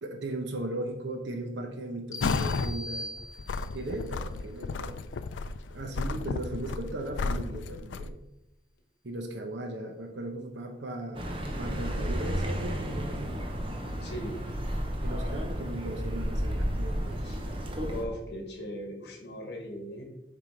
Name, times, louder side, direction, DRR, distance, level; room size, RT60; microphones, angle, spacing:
voice 1, 0.0-3.1 3.7-5.1 5.7-8.1 9.0-13.4 15.0-17.2, right 1 dB, 80° right, 4 dB, 0.9 m, -37 dB
sound 1, 2.1-3.9, left 1 dB, 20° left, 0.5 m, -41 dB
sound 2, 2.2-2.7 3.2-8.1, left 4 dB, 90° left, 0.4 m, -33 dB
Accelerating revving vroom, 11.1-18.0, equal, 30° right, 0.8 m, -32 dB
voice 2, 14.0-14.3 17.2-17.4 17.8-20.0, equal, 65° left, 2 dB, 1.6 m, -39 dB
7.5 x 3.7 x 4.9 m, 0.93 s
head